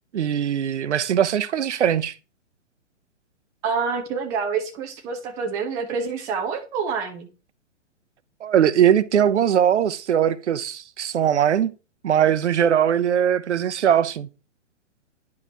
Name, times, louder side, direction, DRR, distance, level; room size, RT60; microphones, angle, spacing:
voice 1, 0.1-2.1 8.4-11.7 12.0-14.3, right 9 dB, 65° right, 0.7 m, -20 dB
voice 2, 3.6-7.3, right 5 dB, 10° right, 0.4 m, -27 dB
10.5 x 4.9 x 2.8 m
figure-of-eight pair, 125°, 37 cm